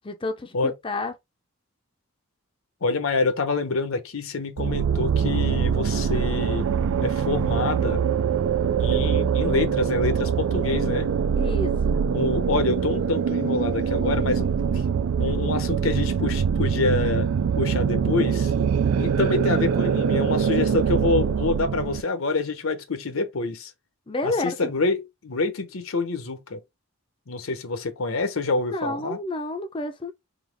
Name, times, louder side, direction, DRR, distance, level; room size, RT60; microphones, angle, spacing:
voice 1, 0.0-1.1 11.4-12.0 24.1-24.7 28.7-30.1, left 2 dB, 25° left, 0.5 m, -30 dB
voice 2, 2.8-6.7 7.0-8.0 8.8-11.1 12.1-14.5 15.2-17.3 17.6-18.5 19.0-23.7 24.2-26.6 27.3-29.2, left 3 dB, 75° left, 0.8 m, -26 dB
sound 1, 4.6-22.0, right 7 dB, 85° right, 0.4 m, -23 dB
3.9 x 2.8 x 3.4 m
head